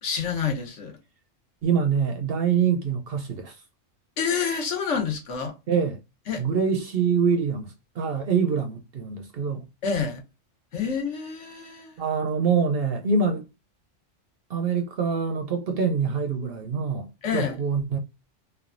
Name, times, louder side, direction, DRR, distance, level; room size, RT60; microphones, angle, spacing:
voice 1, 0.0-1.0 4.2-5.5 6.3-6.4 9.8-10.2 10.7-11.9 17.2-17.6, left 6 dB, 70° left, 1.2 m, -28 dB
voice 2, 1.6-3.6 5.7-6.0 6.4-9.7 12.0-13.4 14.5-18.0, right 6 dB, 60° right, 0.7 m, -25 dB
3.1 x 2.2 x 2.4 m
omnidirectional pair, 1.3 m